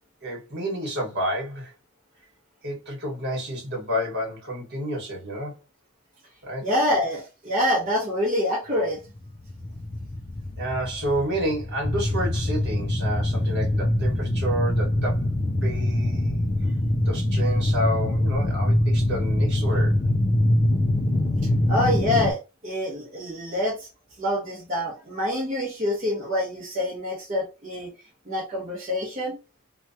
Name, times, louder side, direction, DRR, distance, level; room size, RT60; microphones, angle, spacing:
voice 1, 0.2-1.7 2.6-5.6 6.4-6.7 10.6-15.3 15.6-16.5 17.0-20.1, equal, 55° right, 1.5 m, -30 dB
voice 2, 6.6-9.0 21.7-23.9 24.2-27.9 28.2-29.3, left 1 dB, 35° right, 1.0 m, -26 dB
sound 1, 9.2-22.3, left 1 dB, 25° left, 0.4 m, -24 dB
3.0 x 2.3 x 2.7 m
head